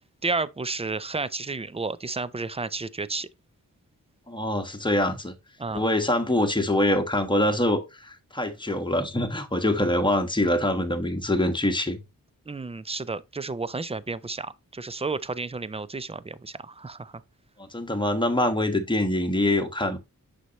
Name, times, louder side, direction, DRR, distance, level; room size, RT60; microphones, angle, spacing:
voice 1, 0.2-3.3 5.6-5.8 12.5-17.2, right 3 dB, 15° right, 0.5 m, -32 dB
voice 2, 4.3-5.3 5.7-12.0 17.6-20.0, left 1 dB, 15° left, 1.3 m, -24 dB
6.2 x 5.6 x 3.0 m
cardioid pair, 50°, 35 cm